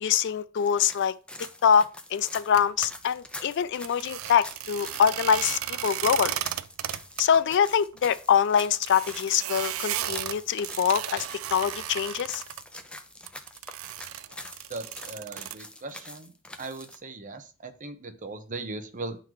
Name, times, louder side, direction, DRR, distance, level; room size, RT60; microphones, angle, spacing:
voice 1, 0.0-1.1 1.6-6.4 7.2-11.3 11.5-12.4, left 8 dB, 60° left, 0.4 m, -24 dB
sound 1, 0.6-17.0, left 1 dB, 5° left, 0.6 m, -45 dB
sound 2, 2.5-2.9 3.8-7.2 7.5-7.6 7.9-8.0 8.6-12.6 13.3-15.6, right 13 dB, 75° right, 0.4 m, -34 dB
voice 2, 14.7-16.3 16.6-19.2, right 3 dB, 40° right, 0.8 m, -38 dB
10.5 x 3.9 x 3.1 m
head